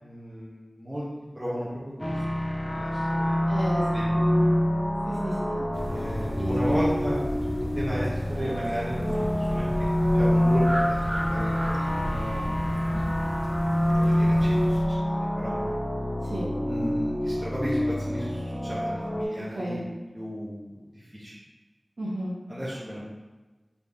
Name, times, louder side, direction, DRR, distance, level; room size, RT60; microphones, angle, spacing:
voice 1, 0.0-1.1 1.3-2.2 2.6-3.4 3.9-4.3 5.9-7.5 7.7-13.1 13.9-15.5 16.6-19.8 20.1-21.3 22.5-23.0, equal, 15° right, -9 dB, 1.2 m, -35 dB
sound 1, 2.0-19.2, equal, 15° left, 0.6 m, -26 dB
voice 2, 3.5-3.8 5.0-5.6 6.4-6.8 16.3-16.5 19.5-19.8 22.0-22.3, right 1 dB, 80° right, -8 dB, 1.0 m, -32 dB
sound 2, 5.7-14.8, equal, 40° right, 0.7 m, -34 dB
4.2 x 3.2 x 3.5 m, 1.2 s
wide cardioid pair, 50°, 0 cm